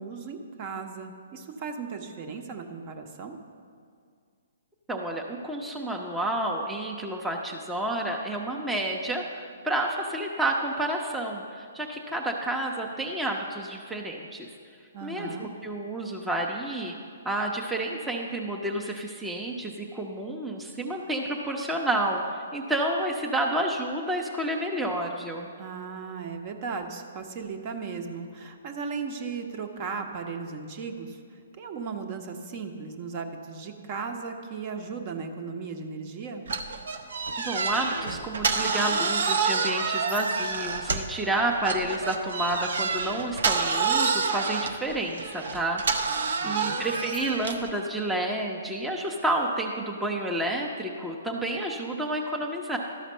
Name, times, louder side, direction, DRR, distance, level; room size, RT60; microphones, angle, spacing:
voice 1, 0.0-3.4 14.9-15.5 25.6-31.2 31.6-36.5 46.4-46.8, right 5 dB, 40° right, 5 dB, 0.8 m, -36 dB
voice 2, 4.9-14.5 15.0-17.0 17.2-25.5 37.4-46.1 46.4-52.8, right 1 dB, 5° right, 0 dB, 0.6 m, -30 dB
sound 1, 36.5-41.2 41.6-47.7, right 5 dB, 70° right, 0.7 m, -28 dB
12.5 x 5.0 x 5.5 m, 2.2 s
hypercardioid pair, 135°, 0 cm